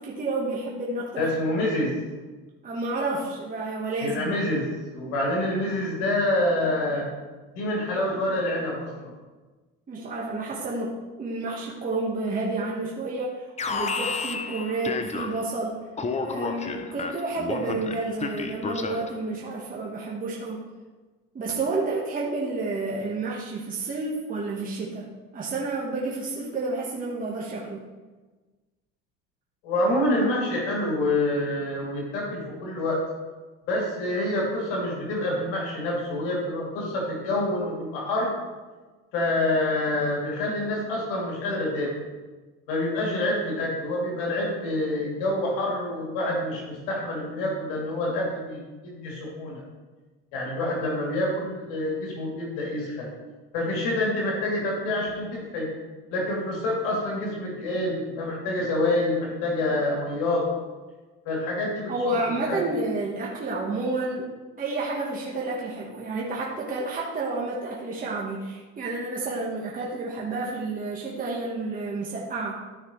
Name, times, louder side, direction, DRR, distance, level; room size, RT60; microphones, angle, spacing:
voice 1, 0.0-1.3 2.6-4.3 9.9-15.8 16.2-20.7 21.3-27.9 61.9-64.3 64.6-72.6, right 3 dB, 25° right, -4 dB, 1.4 m, -30 dB
voice 2, 1.2-1.9 4.0-4.6 4.9-7.1 7.5-9.1 29.6-33.0 33.7-38.3 39.1-41.9 42.7-49.6 50.3-53.1 53.5-55.7 56.1-60.5 61.2-62.1 62.5-62.6, left 1 dB, 85° left, -3 dB, 3.0 m, -27 dB
Alarm, 13.6-15.6 16.0-19.2, left 4 dB, 20° left, 0.7 m, -31 dB
13.5 x 5.9 x 3.2 m, 1.3 s
supercardioid pair, 110°, 31 cm